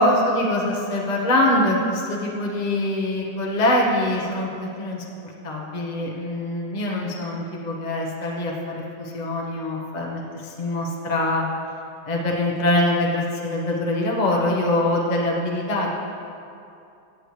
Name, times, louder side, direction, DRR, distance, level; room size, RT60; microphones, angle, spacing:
voice 1, 0.0-5.0 5.4-11.5 12.0-15.9, left 1 dB, 40° left, -2 dB, 0.6 m, -23 dB
16.5 x 8.2 x 3.2 m, 2.6 s
omnidirectional pair, 2.4 m